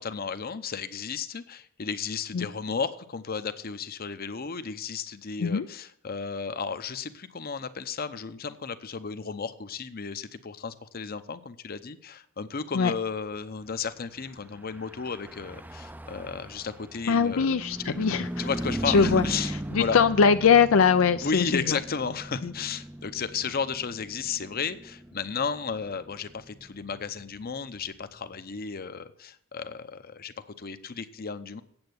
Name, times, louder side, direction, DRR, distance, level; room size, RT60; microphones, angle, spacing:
voice 1, 0.0-17.5 17.8-18.0 18.4-20.0 21.2-31.6, left 5 dB, 50° left, 12 dB, 0.7 m, -34 dB
Car passing by / Truck, 14.6-28.3, right 1 dB, 10° right, 0.4 m, -38 dB
voice 2, 17.1-18.3 18.9-21.8 22.4-22.5, left 6 dB, 80° left, 10 dB, 0.5 m, -22 dB
8.8 x 7.9 x 8.0 m, 0.66 s
head